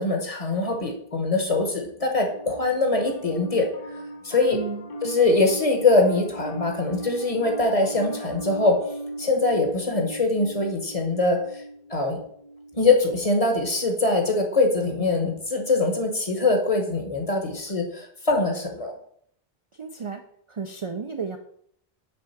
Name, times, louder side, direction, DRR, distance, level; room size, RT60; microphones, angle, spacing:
voice 1, 0.0-3.7 4.2-4.6 5.0-8.8 9.2-11.6 11.9-12.2 12.8-18.9, left 3 dB, 35° left, 3 dB, 1.2 m, -23 dB
Piano, 2.2-13.7, right 1 dB, 60° left, 1.2 m, -38 dB
voice 2, 4.5-4.9 19.7-21.4, right 5 dB, 45° right, 6 dB, 0.4 m, -33 dB
6.8 x 3.7 x 5.8 m, 0.66 s
omnidirectional pair, 1.0 m